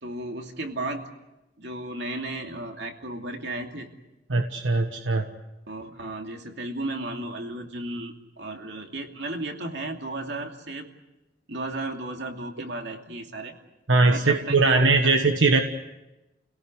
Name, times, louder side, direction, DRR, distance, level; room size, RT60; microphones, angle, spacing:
voice 1, 0.0-1.1 1.6-3.9 5.7-10.9 11.5-13.6 14.1-15.1, right 2 dB, 60° right, 3 dB, 2.7 m, -34 dB
voice 2, 4.3-5.3 13.9-15.6, right 3 dB, 85° right, 6 dB, 1.3 m, -20 dB
30.0 x 17.5 x 8.0 m, 1.0 s
head